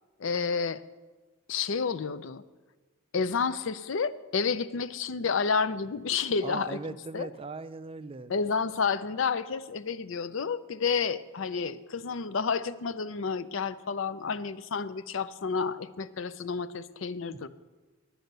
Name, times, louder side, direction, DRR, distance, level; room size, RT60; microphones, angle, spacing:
voice 1, 0.2-0.8 1.5-2.4 3.1-6.8 7.1-7.3 8.3-17.5, left 5 dB, 65° left, 15 dB, 0.5 m, -30 dB
voice 2, 6.4-8.3 17.3-17.5, right 3 dB, 25° right, 13 dB, 0.3 m, -39 dB
10.0 x 9.1 x 6.7 m, 1.2 s
head